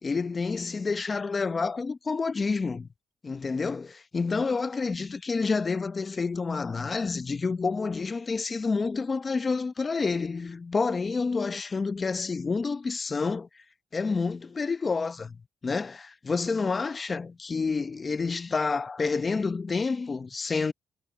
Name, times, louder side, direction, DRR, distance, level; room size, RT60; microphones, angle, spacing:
voice 1, 0.0-2.9 3.2-13.5 13.9-20.7, left 4 dB, 30° left, 0.8 m, -29 dB
cardioid pair, 90°, 0 cm